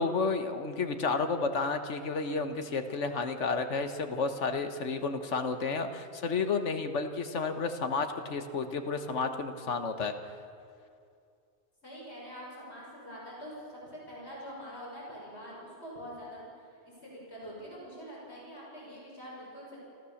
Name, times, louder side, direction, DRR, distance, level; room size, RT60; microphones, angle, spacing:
voice 1, 0.0-10.1, left 4 dB, 80° left, 7 dB, 1.5 m, -31 dB
voice 2, 11.8-16.4 16.8-19.8, equal, 65° left, -5 dB, 6.7 m, -45 dB
27.0 x 14.0 x 7.2 m, 2.4 s
omnidirectional pair, 1.2 m